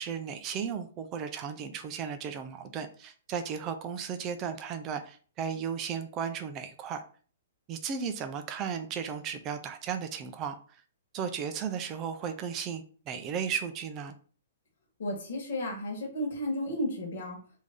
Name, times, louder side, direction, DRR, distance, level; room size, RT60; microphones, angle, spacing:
voice 1, 0.0-7.0 7.7-10.8 11.1-14.1, right 7 dB, 20° right, 8 dB, 0.4 m, -35 dB
voice 2, 15.0-17.4, left 1 dB, 55° left, 1 dB, 1.3 m, -33 dB
3.3 x 2.6 x 3.5 m, 0.41 s
hypercardioid pair, 170°, 0 cm